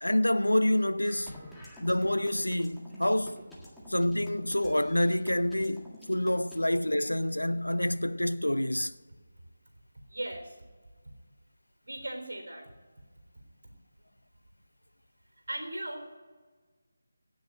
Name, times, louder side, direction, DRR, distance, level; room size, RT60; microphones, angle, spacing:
voice 1, 0.0-1.4 1.8-3.4 3.9-8.9, left 1 dB, 80° left, 0.7 m, -27 dB
sound 1, 1.0-6.6, left 1 dB, ahead, 1.8 m, -49 dB
voice 2, 10.1-10.6 11.8-12.7 15.5-16.2, right 1 dB, 65° right, 3.7 m, -38 dB
17.0 x 6.4 x 9.7 m
figure-of-eight pair, 155°, 0 cm